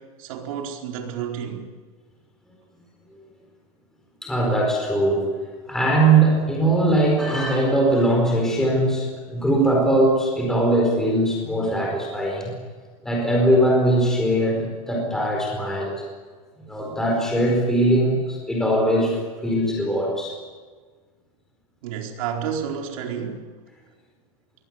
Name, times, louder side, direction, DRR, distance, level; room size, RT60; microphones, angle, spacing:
voice 1, 0.0-1.7 21.8-23.4, right 8 dB, 65° right, 4.5 m, -30 dB
voice 2, 4.2-5.3 5.7-12.5 13.0-15.9 16.7-20.4, right 1 dB, 5° left, 4.6 m, -20 dB
23.5 x 18.0 x 9.6 m
supercardioid pair, 170°, 19 cm